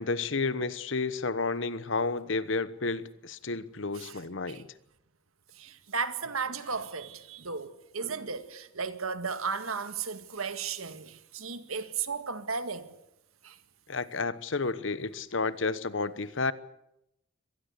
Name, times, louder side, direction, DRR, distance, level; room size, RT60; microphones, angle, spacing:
voice 1, 0.0-4.7 13.9-16.5, left 3 dB, 65° left, 1.1 m, -31 dB
voice 2, 5.5-12.9 13.4-13.6, right 5 dB, 90° right, 1.9 m, -35 dB
24.5 x 19.5 x 8.3 m
head